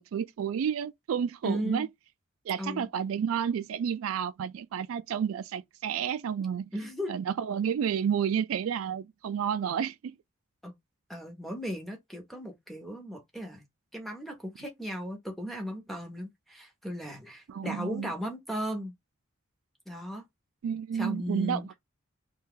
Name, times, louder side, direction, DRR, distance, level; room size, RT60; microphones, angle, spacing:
voice 1, 0.0-1.9 2.5-6.7 7.1-10.0 17.5-18.1 20.6-21.7, right 8 dB, 80° right, 0.3 m, -30 dB
voice 2, 1.4-1.9 2.6-2.9 6.7-7.1 10.6-10.7 11.1-13.6 13.9-18.9 19.9-20.3 20.9-21.7, equal, ahead, 0.9 m, -36 dB
2.7 x 2.3 x 3.6 m
head